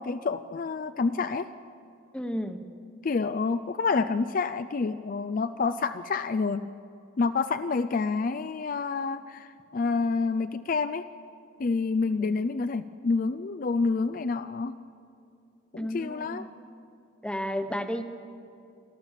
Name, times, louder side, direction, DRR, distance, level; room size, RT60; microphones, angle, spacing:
voice 1, 0.0-1.5 3.0-6.7 7.2-11.1 11.6-14.7 15.7-16.5, left 4 dB, 45° left, 11 dB, 0.4 m, -28 dB
voice 2, 2.1-2.6 12.2-12.4 15.8-16.5 17.2-18.0, equal, 5° left, 7 dB, 1.0 m, -32 dB
28.5 x 13.0 x 7.4 m, 2.6 s
head